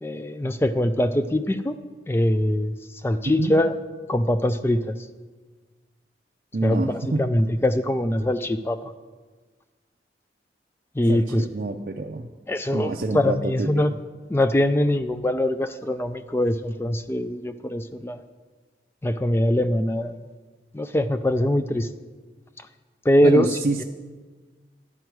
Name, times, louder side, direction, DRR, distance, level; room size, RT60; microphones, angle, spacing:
voice 1, 0.0-1.8 2.1-3.7 4.1-5.0 6.6-8.9 11.0-11.4 12.5-13.9 14.3-18.2 19.0-20.2 20.7-21.9 23.0-23.5 23.8-23.9, left 1 dB, 15° left, 10 dB, 0.3 m, -23 dB
voice 2, 6.5-7.3 11.1-12.3 12.7-13.7 23.2-23.8, right 2 dB, 50° right, 1 dB, 0.5 m, -26 dB
11.5 x 9.3 x 4.7 m, 1.4 s
head